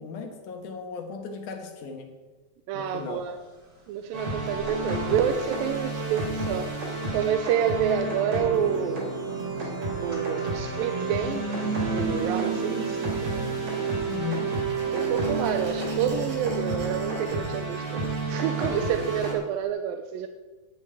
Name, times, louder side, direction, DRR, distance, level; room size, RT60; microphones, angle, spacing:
voice 1, 0.0-2.1 2.7-3.3 14.1-14.6, left 6 dB, 65° left, 5 dB, 2.7 m, -36 dB
voice 2, 2.7-3.3 3.9-6.7 7.1-9.1 9.6-9.7 10.0-11.5 11.9-13.0 14.9-20.3, right 8 dB, 85° right, 7 dB, 2.4 m, -28 dB
sound 1, 3.8-3.9 4.4-6.8 7.3-18.6, right 4 dB, 20° right, 2.7 m, -38 dB
sound 2, 4.1-19.3, right 3 dB, 45° right, 4.4 m, -30 dB
sound 3, 13.1-19.6, right 1 dB, 65° right, 5.0 m, -46 dB
10.5 x 7.2 x 9.0 m, 1.3 s
omnidirectional pair, 4.0 m